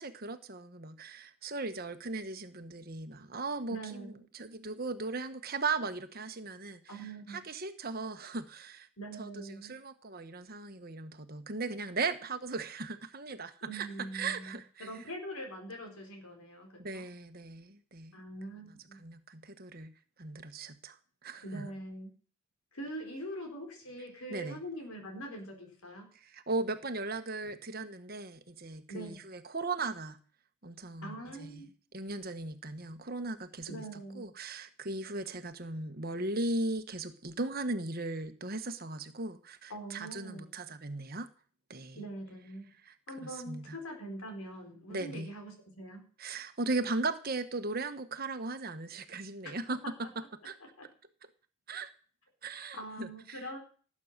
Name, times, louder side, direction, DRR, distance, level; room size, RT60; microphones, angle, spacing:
voice 1, 0.0-7.0 7.3-8.9 9.2-13.9 14.1-14.9 16.8-18.1 19.0-19.9 20.2-21.0 21.2-21.7 24.3-24.6 26.2-30.2 30.6-31.6 31.9-33.8 34.1-41.3 41.7-42.0 42.9-43.0 43.2-43.8 44.9-45.3 46.2-50.1 50.4-50.5 51.7-51.9 52.4-53.5, right 3 dB, 45° right, 9 dB, 1.4 m, -37 dB
voice 2, 3.7-4.2 6.9-7.4 9.0-9.7 13.7-17.0 18.1-19.0 21.4-22.1 22.7-26.1 27.4-27.5 28.9-29.2 31.0-31.7 33.7-34.2 39.7-40.5 42.0-42.7 43.1-46.0 49.8-50.1 50.8-50.9 52.5-53.6, right 1 dB, 80° left, 3 dB, 4.5 m, -43 dB
18.5 x 8.8 x 6.7 m, 0.42 s
head